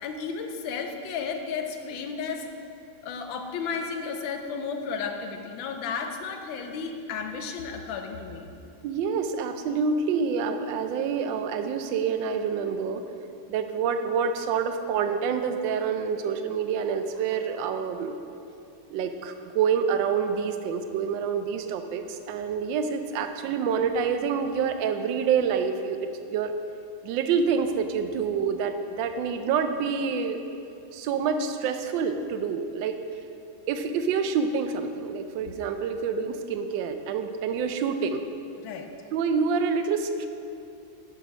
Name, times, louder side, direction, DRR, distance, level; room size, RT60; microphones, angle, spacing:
voice 1, 0.0-2.5 3.0-8.5 38.6-38.9, left 5 dB, 75° left, 5 dB, 1.4 m, -33 dB
voice 2, 8.8-13.0 13.5-18.2 18.9-26.5 27.0-30.4 30.9-32.9 33.7-38.2 39.1-40.3, right 6 dB, 75° right, 7 dB, 1.2 m, -27 dB
7.8 x 4.6 x 6.2 m, 2.6 s
omnidirectional pair, 2.2 m